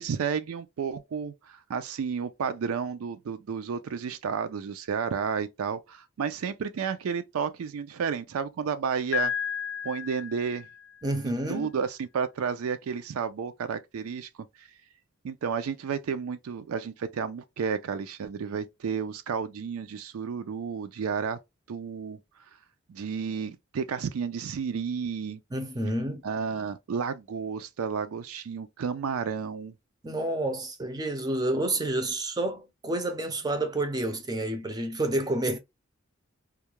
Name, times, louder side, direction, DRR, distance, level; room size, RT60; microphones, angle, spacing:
voice 1, 0.0-9.3 9.8-10.7 11.2-14.3 14.6-14.7 15.2-21.4 21.7-22.2 22.9-25.4 26.2-29.7, right 6 dB, 80° right, 0.4 m, -32 dB
Piano, 9.1-11.0, left 8 dB, 60° left, 0.4 m, -32 dB
voice 2, 11.0-11.7 25.5-26.2 30.0-35.6, right 1 dB, 20° right, 0.5 m, -29 dB
2.3 x 2.1 x 2.9 m
head